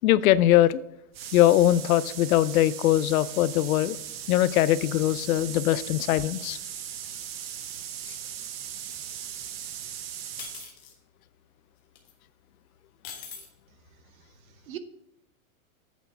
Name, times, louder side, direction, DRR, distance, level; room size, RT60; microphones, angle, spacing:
voice 1, 0.0-0.8 1.3-4.0 4.3-6.6, left 13 dB, 80° left, 17 dB, 0.5 m, -21 dB
sound 1, 1.1-10.7, right 9 dB, 45° right, 0.7 m, -38 dB
sound 2, 10.4-10.9 12.0-12.1 13.0-13.5, left 7 dB, 15° left, 0.4 m, -41 dB
voice 2, 14.1-14.8, right 11 dB, 80° right, 11 dB, 0.9 m, -43 dB
8.3 x 4.0 x 5.8 m, 0.83 s
supercardioid pair, 165°, 42 cm